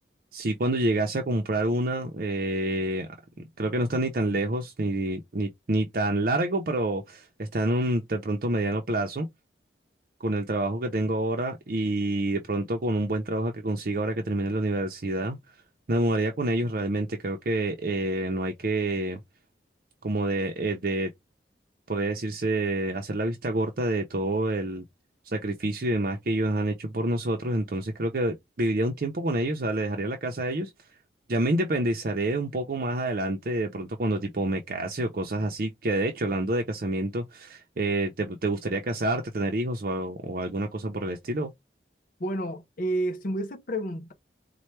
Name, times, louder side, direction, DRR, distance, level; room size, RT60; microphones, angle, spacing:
voice 1, 0.3-3.1 3.6-9.3 10.2-15.4 15.9-19.2 20.0-21.1 21.9-24.8 25.2-30.7 31.3-41.5, right 1 dB, 50° right, 0.6 m, -28 dB
voice 2, 42.2-44.1, right 1 dB, 50° left, 0.6 m, -30 dB
4.3 x 2.2 x 3.2 m
head